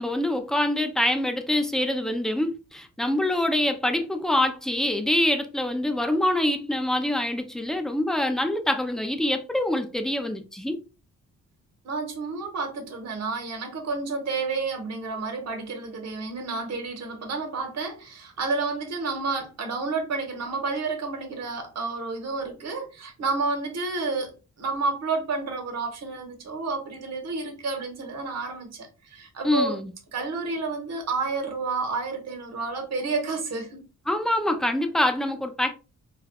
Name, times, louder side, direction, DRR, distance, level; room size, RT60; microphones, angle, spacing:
voice 1, 0.0-10.8 29.4-29.9 34.1-35.7, left 1 dB, ahead, 0.4 m, -25 dB
voice 2, 11.8-29.8 30.1-33.9, right 3 dB, 60° right, 1.1 m, -30 dB
4.9 x 2.3 x 2.2 m
wide cardioid pair, 160°, 30 cm